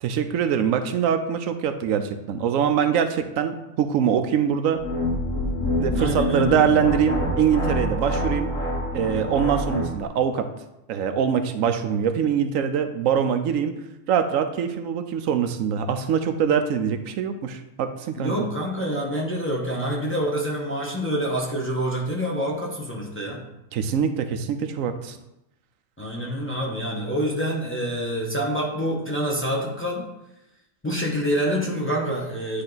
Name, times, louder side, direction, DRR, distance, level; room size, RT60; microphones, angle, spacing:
voice 1, 0.0-4.8 5.8-8.5 8.9-10.5 10.9-13.7 14.1-18.5 23.7-25.2, right 8 dB, 85° right, 8 dB, 1.0 m, -23 dB
sound 1, 4.7-10.0, left 1 dB, 85° left, 1.6 m, -26 dB
voice 2, 6.0-6.7 18.2-23.4 26.0-30.1 30.8-32.6, equal, 10° left, -3 dB, 0.9 m, -27 dB
9.7 x 3.2 x 3.9 m, 0.90 s
omnidirectional pair, 1.4 m